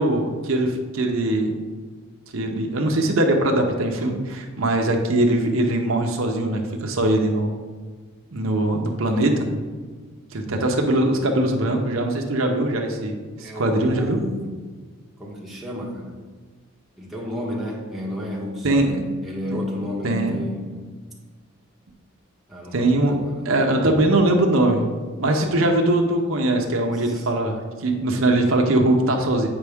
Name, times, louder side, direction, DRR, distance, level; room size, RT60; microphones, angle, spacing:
voice 1, 0.0-1.5 2.3-7.5 8.3-9.5 10.3-14.2 18.6-19.1 19.5-19.6 20.0-20.4 22.7-23.2 23.4-29.5, right 1 dB, 70° right, 3 dB, 0.8 m, -21 dB
voice 2, 13.4-14.6 15.2-16.2 17.0-20.9 22.5-23.5 25.4-25.7 27.0-27.3, left 1 dB, ahead, -5 dB, 1.1 m, -32 dB
7.9 x 5.3 x 3.5 m, 1.5 s
head